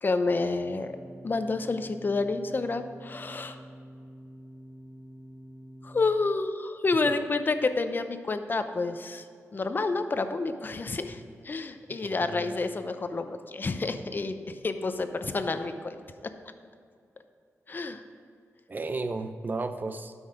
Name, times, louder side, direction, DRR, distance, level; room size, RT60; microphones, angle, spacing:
voice 1, 0.0-0.9 1.2-3.6 5.8-9.2 9.5-16.0 17.7-18.0, left 3 dB, 40° left, 9 dB, 0.7 m, -29 dB
sound 1, 0.5-6.0, equal, 5° left, 2.2 m, -47 dB
voice 2, 12.2-12.5 18.7-20.1, right 3 dB, 35° right, 9 dB, 0.6 m, -33 dB
12.0 x 6.4 x 5.0 m, 2.3 s
wide cardioid pair, 100°, 5 cm